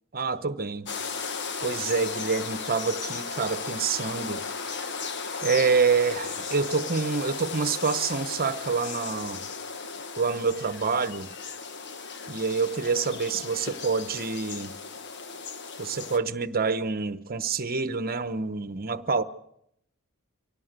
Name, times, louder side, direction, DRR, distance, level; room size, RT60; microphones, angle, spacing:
voice 1, 0.1-0.9 1.6-4.4 5.4-9.5 10.2-11.3 12.3-14.7 15.8-19.2, right 5 dB, 45° right, 1.0 m, -27 dB
sound 1, 0.9-16.2, left 5 dB, 55° left, 1.3 m, -36 dB
25.0 x 17.5 x 6.7 m
head